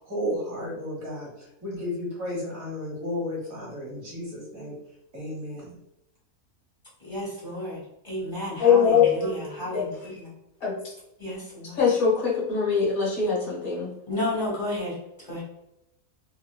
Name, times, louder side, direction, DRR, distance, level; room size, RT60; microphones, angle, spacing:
voice 1, 0.0-4.7 5.1-5.7, left 1 dB, 65° right, -4 dB, 1.8 m, -33 dB
voice 2, 7.0-10.3 11.2-11.9 14.1-14.9 15.2-15.4, left 1 dB, 20° left, -7 dB, 1.4 m, -32 dB
voice 3, 8.6-9.8 10.6-10.7 11.8-13.9, left 6 dB, 70° left, -5 dB, 1.6 m, -22 dB
3.7 x 2.9 x 2.3 m, 0.84 s
omnidirectional pair, 1.6 m